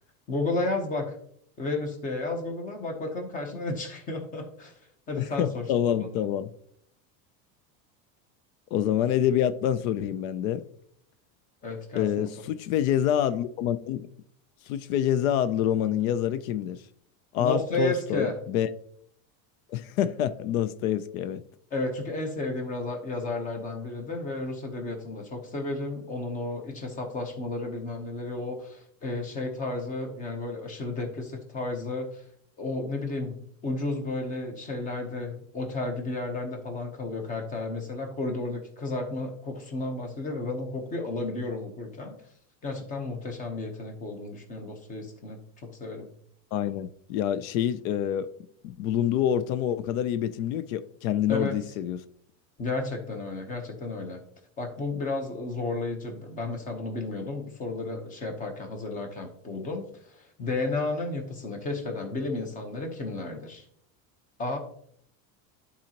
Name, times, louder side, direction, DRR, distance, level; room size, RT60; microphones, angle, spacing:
voice 1, 0.3-1.2 1.6-4.8 5.1-6.2 11.6-12.3 17.4-18.4 21.7-32.2 32.6-42.2 42.6-45.4 45.8-46.1 51.3-51.6 52.6-54.2 54.6-63.6 64.4-64.6, left 2 dB, 20° left, 0.9 m, -32 dB
voice 2, 5.2-6.5 8.7-10.6 11.9-14.1 14.7-16.8 17.3-18.7 19.7-21.4 46.5-48.3 48.6-52.0, left 10 dB, 90° left, 0.6 m, -27 dB
11.5 x 4.1 x 2.9 m
cardioid pair, 175°, 40 cm